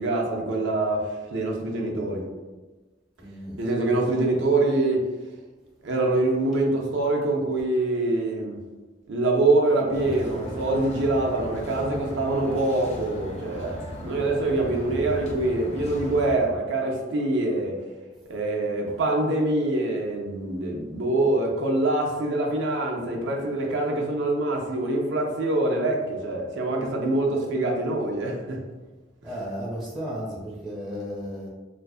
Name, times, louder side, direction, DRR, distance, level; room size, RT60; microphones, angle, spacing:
voice 1, 0.0-2.2 3.6-5.1 5.8-8.6 9.1-17.8 18.3-28.6, right 2 dB, 85° right, 0 dB, 0.5 m, -25 dB
voice 2, 3.2-3.6 18.9-19.0 29.2-31.5, equal, ahead, -5 dB, 0.9 m, -34 dB
sound 1, 9.9-16.4, left 1 dB, 40° left, 0.4 m, -37 dB
2.5 x 2.3 x 2.3 m, 1.2 s
head